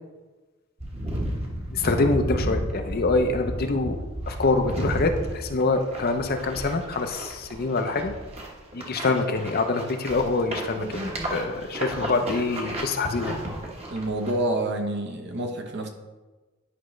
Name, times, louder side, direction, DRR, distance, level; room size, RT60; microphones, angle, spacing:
sound 1, 0.8-14.3, right 1 dB, 30° right, 1.2 m, -33 dB
voice 1, 1.7-4.0 4.3-8.2 8.7-11.0 11.3-13.4, left 3 dB, 45° left, 6 dB, 0.6 m, -25 dB
voice 2, 13.9-15.9, right 1 dB, 55° right, 3 dB, 0.9 m, -28 dB
9.9 x 5.0 x 3.2 m, 1.2 s
head